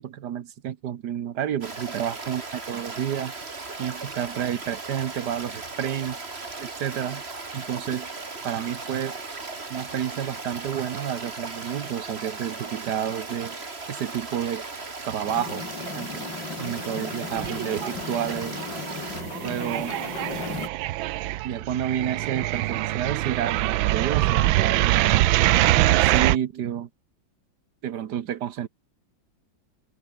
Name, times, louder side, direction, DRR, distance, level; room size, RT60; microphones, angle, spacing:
voice 1, 0.0-2.4 2.7-3.3 3.8-6.2 6.6-7.2 7.5-8.1 8.4-9.2 9.7-13.6 13.9-14.6 15.0-15.7 15.9-16.2 16.6-18.6 19.4-20.0 21.4-25.3 25.8-26.9 27.8-28.7, right 10 dB, 60° right, 1.5 m, -30 dB
Stream, 1.6-19.2, right 3 dB, 30° right, 2.7 m, -37 dB
sound 1, 15.3-20.7, left 4 dB, 65° left, 3.8 m, -36 dB
sound 2, 17.3-18.0 18.3-26.4, right 16 dB, 90° right, 1.4 m, -23 dB
omnidirectional pair, 2.1 m